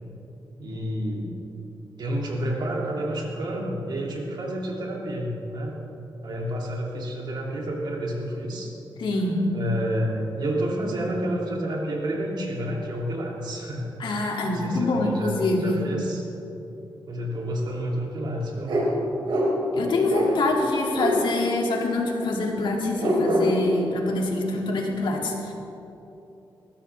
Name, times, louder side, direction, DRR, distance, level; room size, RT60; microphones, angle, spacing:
voice 1, 0.6-1.4 2.0-5.7 6.2-8.7 9.5-13.9 14.5-16.2 17.1-18.7, equal, 60° right, -2 dB, 2.9 m, -29 dB
voice 2, 9.0-9.5 14.0-15.8 19.7-25.5, left 2 dB, 75° left, -1 dB, 2.5 m, -25 dB
sound 1, 18.7-18.9 19.3-19.5 20.1-20.3 20.9-21.2 22.1-22.2 23.0-23.5, right 1 dB, 80° right, 4.2 m, -24 dB
20.5 x 15.0 x 3.5 m, 2.9 s
wide cardioid pair, 110°, 8 cm